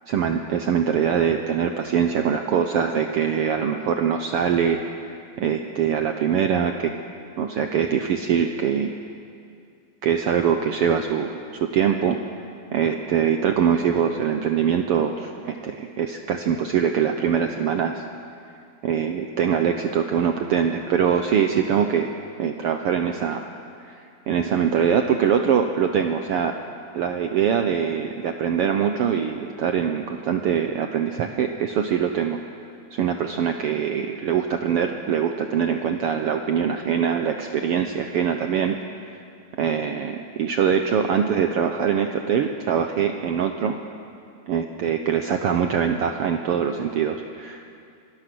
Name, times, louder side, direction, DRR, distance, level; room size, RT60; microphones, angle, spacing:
voice 1, 0.1-4.8 5.4-6.9 7.4-8.9 10.0-12.2 12.7-18.0 18.8-22.1 22.4-23.5 23.8-24.0 24.3-26.6 26.9-32.4 32.9-38.8 39.6-43.7 44.5-47.7, right 8 dB, 70° right, 5 dB, 1.5 m, -23 dB
26.0 x 20.0 x 6.2 m, 2.4 s
omnidirectional pair, 3.4 m